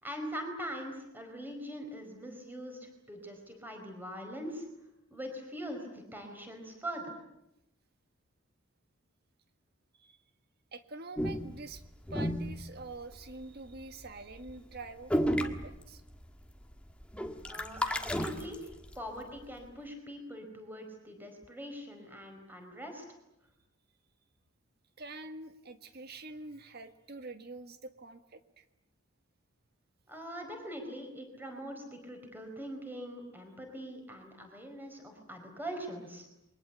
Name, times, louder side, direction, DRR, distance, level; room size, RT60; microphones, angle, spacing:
voice 1, 0.0-4.7 5.1-7.2 17.5-18.7 19.0-23.0 30.1-36.3, equal, 10° right, 4 dB, 4.7 m, -42 dB
voice 2, 10.7-11.8 12.1-16.0 25.0-28.6, right 2 dB, 50° right, 9 dB, 1.7 m, -46 dB
sound 1, 11.2-13.4 13.8-14.1 14.3-14.5 14.8-14.9 15.1-16.3 16.6-19.0, equal, 5° left, 1.5 m, -33 dB
29.0 x 23.0 x 8.3 m, 0.86 s
head